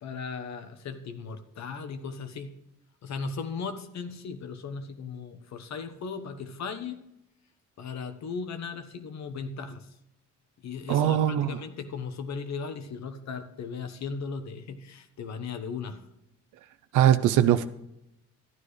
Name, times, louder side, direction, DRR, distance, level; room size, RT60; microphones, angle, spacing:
voice 1, 0.0-2.5 3.0-7.0 7.8-9.9 10.6-16.1, left 5 dB, 65° left, 9 dB, 1.1 m, -37 dB
voice 2, 10.9-11.6 16.9-17.7, right 11 dB, 85° right, 12 dB, 0.6 m, -21 dB
12.0 x 9.9 x 3.2 m, 0.85 s
cardioid pair, 90°, 30 cm